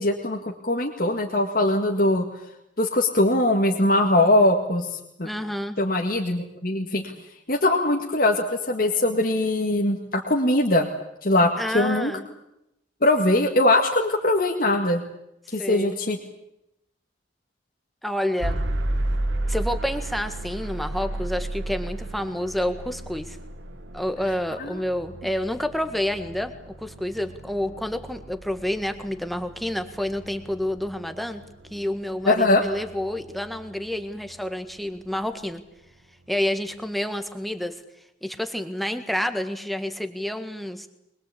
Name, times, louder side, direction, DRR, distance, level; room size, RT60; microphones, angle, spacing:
voice 1, 0.0-2.3 2.8-5.3 5.8-7.1 7.5-10.9 11.2-12.1 13.0-15.0 15.5-16.2 24.6-24.8 32.3-32.6, left 1 dB, 50° left, 1 dB, 2.0 m, -21 dB
voice 2, 5.2-5.8 11.6-12.2 15.6-16.0 18.0-18.6 19.5-23.4 23.9-31.4 31.7-35.6 36.3-37.8 38.2-40.9, left 1 dB, ahead, 8 dB, 1.6 m, -29 dB
sound 1, 18.4-34.3, right 1 dB, 90° right, 2.1 m, -33 dB
24.0 x 21.5 x 8.5 m, 0.84 s
head